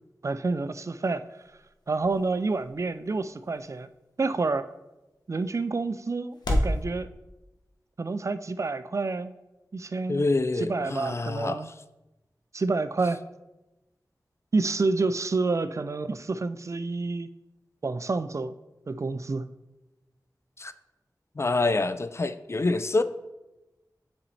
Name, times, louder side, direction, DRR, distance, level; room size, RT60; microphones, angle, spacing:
voice 1, 0.2-1.2 1.9-3.9 4.2-4.7 5.3-7.1 8.0-9.3 9.7-10.2 10.6-11.7 12.5-13.2 14.5-17.3 17.8-18.5 18.9-19.5, right 3 dB, 45° right, 0.3 m, -28 dB
sound 1, 0.6-6.8, left 1 dB, 85° left, 0.9 m, -35 dB
voice 2, 10.1-11.7 20.6-20.7 21.4-23.0, left 3 dB, 40° left, 0.4 m, -26 dB
7.0 x 5.1 x 3.2 m
wide cardioid pair, 55°, 7 cm